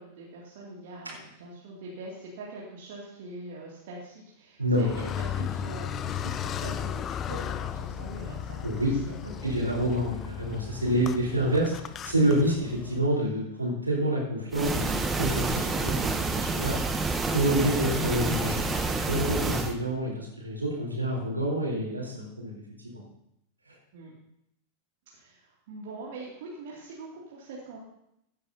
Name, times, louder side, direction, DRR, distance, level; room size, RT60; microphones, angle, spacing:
voice 1, 0.0-9.5 11.0-11.1 17.5-17.7 18.1-18.2 23.9-24.1 25.1-27.8, right 2 dB, 55° right, -4 dB, 2.4 m, -43 dB
Car, 4.7-13.0, left 9 dB, 30° left, 0.5 m, -35 dB
voice 2, 8.6-8.9 9.4-16.8 17.3-22.6 22.9-23.0, right 1 dB, 80° right, -3 dB, 3.8 m, -28 dB
sound 1, 14.5-19.7, right 3 dB, 15° right, 0.9 m, -28 dB
15.5 x 9.1 x 2.8 m, 0.79 s
figure-of-eight pair, 90°, 0 cm